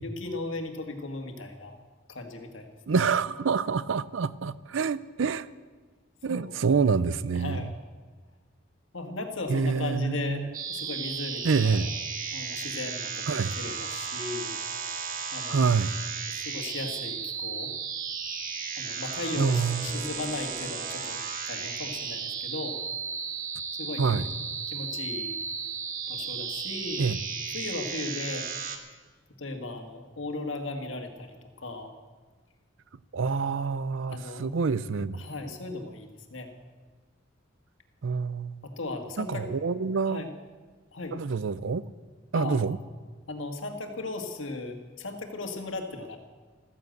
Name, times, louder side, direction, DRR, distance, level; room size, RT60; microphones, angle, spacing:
voice 1, 0.0-1.8 2.1-3.1 6.3-6.6 7.3-7.7 8.9-11.8 12.3-14.5 15.3-15.7 16.3-17.7 18.8-21.2 21.5-22.8 23.8-24.3 24.7-25.4 26.1-27.1 27.5-28.5 29.4-31.9 34.1-34.5 35.1-36.5 38.6-39.5 40.1-40.3 40.9-41.2 42.3-42.6 43.3-46.2, left 2 dB, 80° left, 1.7 m, -36 dB
voice 2, 2.9-5.5 6.2-7.6 9.5-10.5 11.4-11.9 13.3-13.5 15.5-15.9 19.3-19.9 24.0-24.3 27.0-27.2 33.1-35.2 38.0-38.6 39.2-40.2 41.1-41.8 42.3-42.8, right 5 dB, 75° right, 0.5 m, -27 dB
sound 1, 10.5-28.8, right 6 dB, 45° right, 1.5 m, -35 dB
13.5 x 10.5 x 7.9 m
head